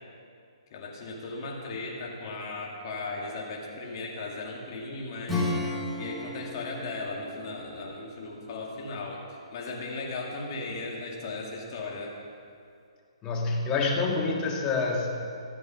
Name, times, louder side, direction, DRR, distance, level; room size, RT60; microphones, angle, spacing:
voice 1, 0.7-12.1, left 3 dB, 40° left, -2 dB, 2.3 m, -37 dB
Acoustic guitar / Strum, 5.2-9.6, left 2 dB, ahead, 2.2 m, -35 dB
voice 2, 13.2-15.2, left 3 dB, 20° left, 0 dB, 1.6 m, -27 dB
14.0 x 7.8 x 5.9 m, 2.4 s
hypercardioid pair, 145°, 3 cm